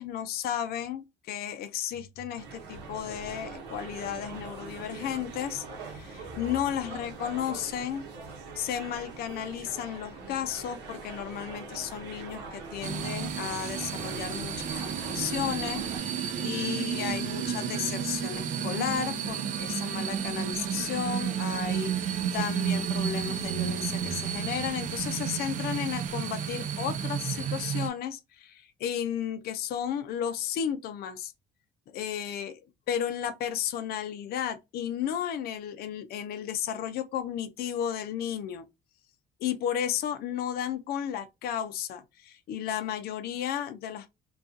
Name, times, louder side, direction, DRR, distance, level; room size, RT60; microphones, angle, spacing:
voice 1, 0.0-8.0 8.6-31.3 31.9-32.6 32.9-38.6 39.4-44.1, left 9 dB, 65° left, 0.5 m, -33 dB
sound 1, 2.3-16.0, right 4 dB, 90° right, 0.8 m, -43 dB
sound 2, 12.8-27.9, right 8 dB, 50° right, 0.4 m, -32 dB
2.3 x 2.3 x 2.5 m
cardioid pair, 110°, 17 cm